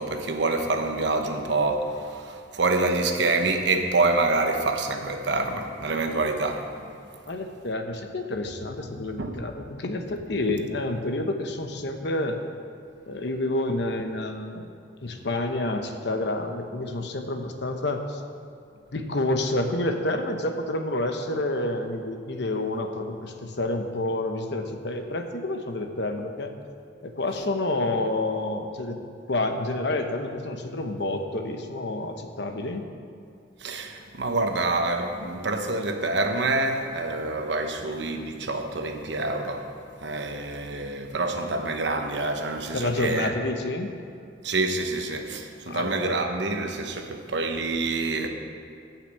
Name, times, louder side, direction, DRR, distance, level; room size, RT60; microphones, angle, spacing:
voice 1, 0.0-7.0 9.2-9.4 33.6-39.7 40.0-43.3 44.4-48.3, right 2 dB, 70° right, 5 dB, 1.1 m, -27 dB
voice 2, 7.3-12.4 13.1-14.7 15.0-18.2 18.9-26.5 27.0-29.0 29.3-32.8 42.7-43.9 45.7-46.1, left 2 dB, 70° left, 5 dB, 1.0 m, -29 dB
12.0 x 5.9 x 8.2 m, 2.5 s
head